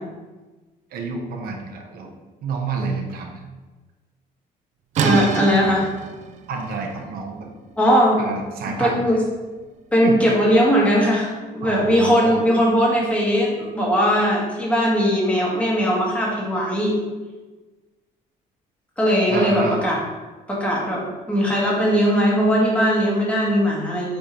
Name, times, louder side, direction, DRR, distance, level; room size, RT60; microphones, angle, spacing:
voice 1, 0.9-2.1 2.4-3.3 6.5-7.5 8.2-9.0 10.0-10.2 11.6-12.4 19.3-19.8, right 4 dB, 70° right, 2 dB, 1.1 m, -28 dB
sound 1, 4.9-10.6, right 7 dB, 50° right, 0.4 m, -29 dB
voice 2, 5.0-5.9 7.8-8.2 8.8-9.2 9.9-17.0 19.0-20.0 20.5-24.2, equal, 10° left, -4 dB, 1.8 m, -19 dB
7.5 x 3.5 x 4.4 m, 1.2 s
cardioid pair, 145°, 16 cm